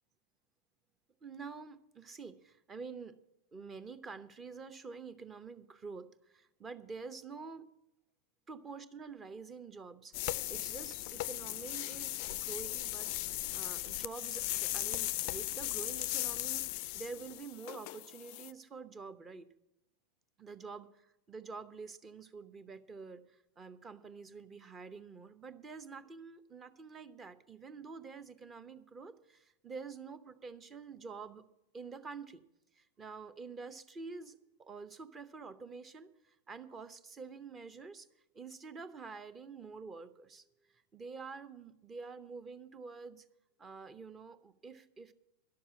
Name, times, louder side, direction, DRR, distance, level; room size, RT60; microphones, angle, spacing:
voice 1, 1.2-3.2 3.5-7.7 8.5-10.2 10.5-13.1 13.5-19.5 20.4-31.4 31.7-32.4 32.7-38.1 38.3-43.3 43.6-45.1, right 4 dB, 20° right, 13 dB, 0.8 m, -47 dB
sound 1, 10.1-18.5, left 17 dB, 45° left, 0.3 m, -37 dB
11.5 x 7.1 x 9.7 m, 0.86 s
figure-of-eight pair, 90°, 0 cm